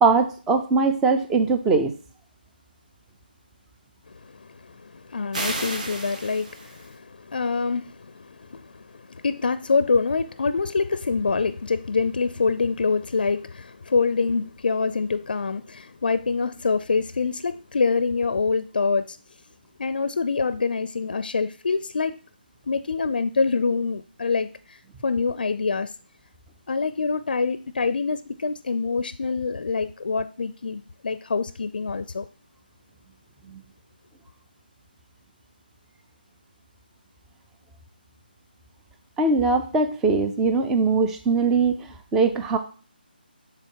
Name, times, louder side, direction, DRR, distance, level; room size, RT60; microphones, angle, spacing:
voice 1, 0.0-1.9 33.5-33.6 39.2-41.7 42.1-42.6, right 4 dB, 5° right, 0.4 m, -21 dB
voice 2, 4.2-19.2 19.8-22.2 22.7-25.9 26.7-32.3, left 4 dB, 65° left, 0.5 m, -25 dB
sound 1, 5.3-6.9, right 2 dB, 45° right, 1.8 m, -32 dB
9.4 x 3.8 x 4.6 m
figure-of-eight pair, 165°, 5 cm